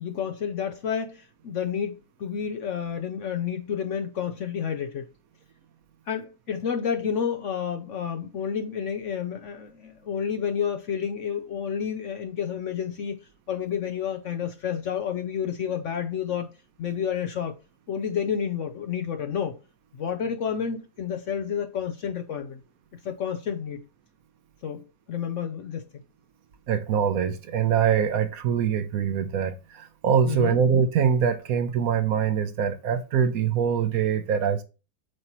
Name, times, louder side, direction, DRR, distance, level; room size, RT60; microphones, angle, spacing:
voice 1, 0.0-5.1 6.1-13.2 13.5-16.5 16.8-17.6 17.9-19.6 19.9-22.6 23.0-23.8 24.6-25.8 30.3-30.6, left 7 dB, 65° left, 0.8 m, -30 dB
voice 2, 26.7-34.6, right 7 dB, 65° right, 1.1 m, -24 dB
7.8 x 2.9 x 4.4 m
omnidirectional pair, 1.7 m